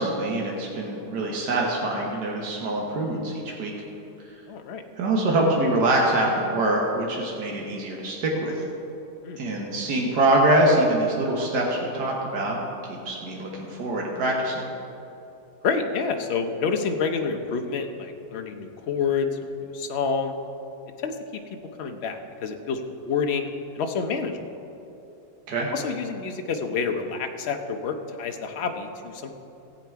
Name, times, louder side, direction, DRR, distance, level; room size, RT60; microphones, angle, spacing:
voice 1, 0.0-3.7 5.0-8.6 9.4-12.6 12.9-14.7 25.5-25.7, right 1 dB, 80° right, -2 dB, 1.8 m, -24 dB
voice 2, 4.5-4.8 9.2-9.4 15.6-20.3 21.0-21.4 21.8-23.5 23.7-24.4 25.7-29.3, left 5 dB, 50° left, 5 dB, 0.9 m, -28 dB
15.0 x 8.4 x 4.6 m, 2.8 s
omnidirectional pair, 1.8 m